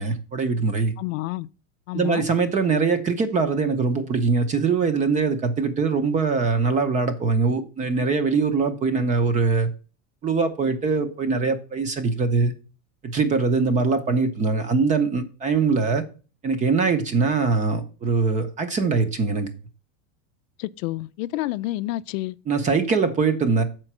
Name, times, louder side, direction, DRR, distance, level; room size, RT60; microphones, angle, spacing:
voice 1, 0.0-0.9 1.9-9.7 10.2-12.5 13.1-16.0 16.4-19.5 22.5-23.6, right 4 dB, 20° right, 0.7 m, -22 dB
voice 2, 1.0-1.5 1.9-2.3 20.6-22.4, left 17 dB, 80° left, 0.5 m, -29 dB
7.6 x 4.5 x 6.0 m
supercardioid pair, 160°, 39 cm